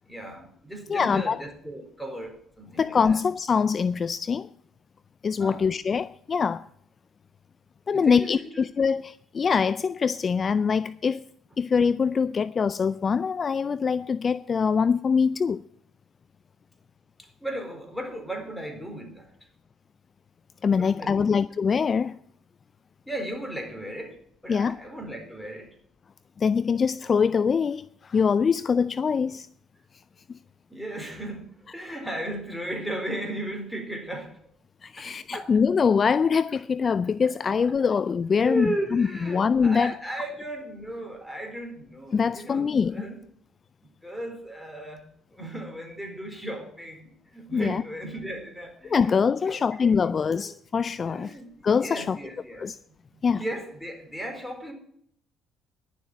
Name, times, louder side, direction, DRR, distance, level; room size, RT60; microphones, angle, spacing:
voice 1, 0.0-3.2 5.4-5.7 7.9-8.6 17.2-19.3 20.8-21.4 23.1-25.8 30.7-34.4 35.0-35.5 36.9-38.0 38.4-43.2 43.8-49.1 49.5-50.5 51.1-52.7 53.1-54.7, right 1 dB, 5° left, 4.2 m, -36 dB
voice 2, 0.9-1.4 2.8-4.5 5.2-6.7 7.9-11.2 11.6-15.6 20.6-22.2 24.5-24.8 26.4-29.5 30.3-30.4 34.8-39.9 42.1-43.0 47.5-47.8 48.9-51.3 51.6-52.2 52.6-52.8 53.2-53.4, left 6 dB, 40° left, 0.4 m, -24 dB
11.0 x 7.3 x 9.0 m
hypercardioid pair, 55°, 0 cm